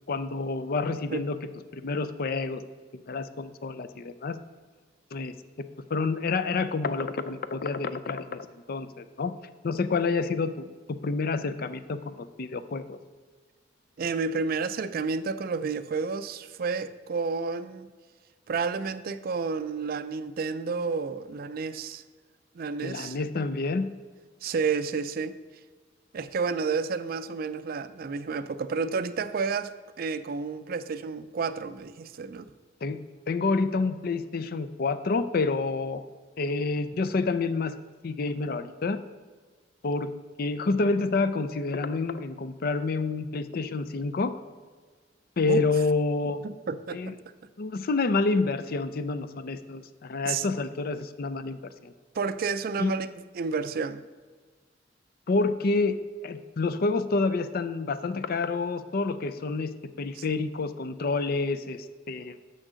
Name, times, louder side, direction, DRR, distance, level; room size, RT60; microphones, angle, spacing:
voice 1, 0.1-1.4 1.7-2.6 2.9-4.4 5.1-5.4 5.9-9.3 9.6-10.7 11.0-13.0 22.8-23.9 32.8-33.0 33.3-36.0 36.4-37.7 38.0-39.0 39.8-40.1 40.4-44.3 45.4-46.4 46.9-47.1 47.6-51.9 52.8-52.9 55.3-62.4, left 3 dB, 55° left, 12 dB, 0.5 m, -28 dB
voice 2, 14.0-17.9 18.5-22.0 22.5-23.2 24.4-25.4 26.1-32.5 45.5-45.6 46.2-47.2 50.2-50.5 52.1-54.0 60.1-60.2, right 5 dB, 55° right, 13 dB, 0.4 m, -31 dB
6.5 x 6.3 x 6.2 m, 1.5 s
head